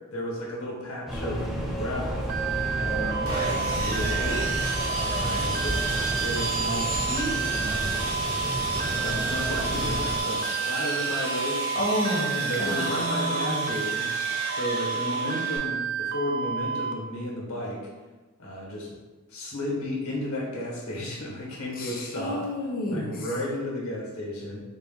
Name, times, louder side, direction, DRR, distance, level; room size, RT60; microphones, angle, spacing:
voice 1, 0.1-2.2 2.8-4.5 5.0-7.9 8.8-11.6 12.4-14.1 14.5-17.8 18.4-18.9 19.3-22.5 22.9-24.6, left 1 dB, 70° left, -2 dB, 1.1 m, -33 dB
sound 1, 1.1-10.2, right 1 dB, ahead, 0.5 m, -31 dB
sound 2, 2.3-16.9, right 6 dB, 50° right, 0.3 m, -30 dB
Sawing, 3.3-15.6, right 1 dB, 85° right, 1.2 m, -34 dB
voice 2, 11.7-13.9 21.8-23.3, left 1 dB, 40° left, -2 dB, 0.8 m, -30 dB
3.9 x 2.2 x 3.8 m, 1.2 s
head